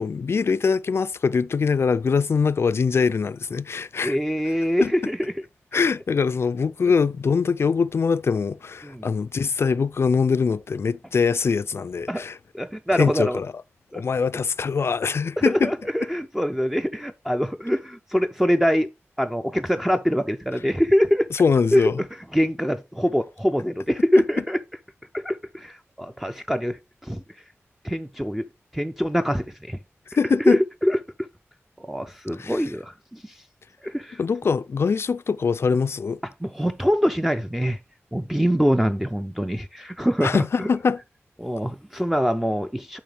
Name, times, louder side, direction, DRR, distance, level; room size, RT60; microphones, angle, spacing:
voice 1, 0.0-4.2 4.8-4.9 5.7-12.4 12.9-13.5 13.9-15.7 21.3-22.0 30.2-30.6 32.4-32.6 34.2-36.2 40.2-41.0, left 5 dB, 60° left, 0.3 m, -23 dB
voice 2, 4.0-5.4 8.8-9.1 12.1-12.2 12.5-13.4 13.9-14.0 15.4-18.9 19.2-21.3 21.7-21.9 22.3-24.6 25.1-27.2 27.8-28.4 28.7-29.8 30.1-31.0 31.8-33.3 33.8-34.2 36.4-37.8 38.1-40.7 41.4-43.0, equal, 5° right, 0.4 m, -24 dB
7.2 x 5.0 x 3.4 m
wide cardioid pair, 110°, 5 cm